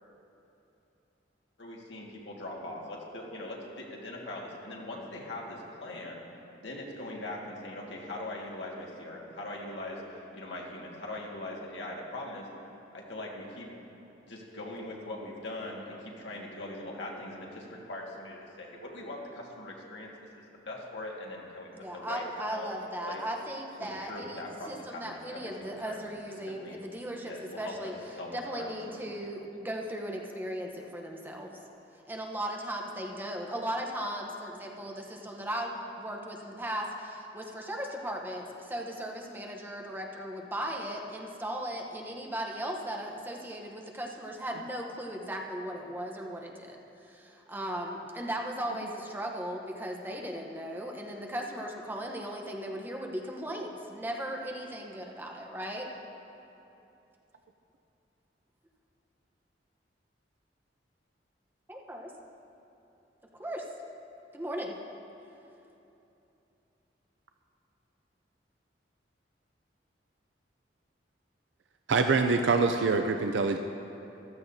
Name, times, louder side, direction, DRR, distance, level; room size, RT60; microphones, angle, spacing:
voice 1, 1.6-6.2 6.6-12.5 12.9-13.7 14.2-22.2 22.5-22.7 23.1-23.2 23.8-26.0 26.5-26.8 27.3-29.2, left 1 dB, 80° left, -2 dB, 1.9 m, -41 dB
voice 2, 21.8-27.9 28.3-31.6 32.1-55.9 61.7-62.1 63.3-63.7 64.3-64.8, right 1 dB, 10° right, 1 dB, 0.9 m, -37 dB
voice 3, 71.9-73.6, right 4 dB, 80° right, 6 dB, 0.4 m, -25 dB
14.5 x 13.0 x 2.7 m, 2.9 s
head